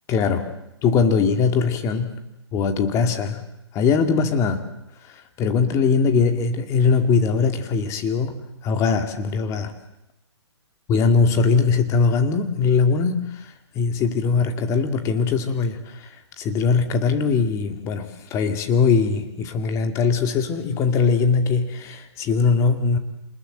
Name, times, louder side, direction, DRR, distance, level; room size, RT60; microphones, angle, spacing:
voice 1, 0.1-0.5 0.8-2.2 2.5-3.4 3.7-4.7 5.1-9.7 10.9-23.0, left 5 dB, 20° left, 7 dB, 2.4 m, -21 dB
27.5 x 20.5 x 8.0 m, 0.88 s
hypercardioid pair, 150°, 15 cm